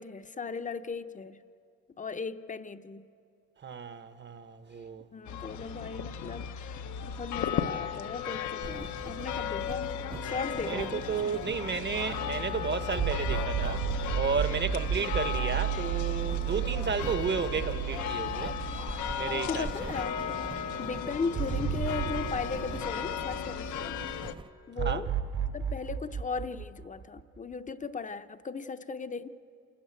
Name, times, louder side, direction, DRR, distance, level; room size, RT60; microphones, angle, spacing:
voice 1, 0.0-1.4 2.0-3.1 5.1-10.0 10.2-11.4 19.3-24.0 24.7-25.1 25.5-29.3, left 4 dB, 25° left, 0.7 m, -37 dB
voice 2, 3.6-5.0 10.6-13.8 14.1-18.6 19.2-19.9 24.8-25.0, right 5 dB, 35° right, 0.9 m, -33 dB
sound 1, 5.3-24.3, left 8 dB, 75° left, 0.9 m, -36 dB
sound 2, 8.6-24.5, right 4 dB, 15° right, 0.4 m, -44 dB
sound 3, 13.0-19.3 19.7-19.8 21.3-23.8 24.8-27.5, right 9 dB, 80° right, 2.7 m, -33 dB
27.5 x 13.0 x 8.9 m
cardioid pair, 90°, 30 cm